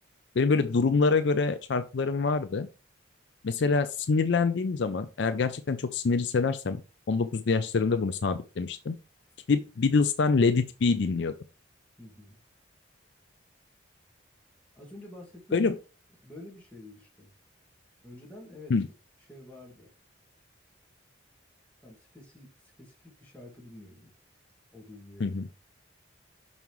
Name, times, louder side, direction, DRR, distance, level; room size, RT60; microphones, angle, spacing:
voice 1, 0.4-2.7 3.4-6.8 7.1-8.9 9.5-11.3 15.5-15.7 18.7-18.9 25.2-25.4, left 4 dB, 60° left, 0.4 m, -25 dB
voice 2, 12.0-12.4 14.8-15.7 16.2-17.3 18.0-18.8 19.3-19.9 21.8-24.1 24.7-25.4, left 1 dB, 5° left, 2.1 m, -48 dB
5.8 x 5.4 x 3.1 m
head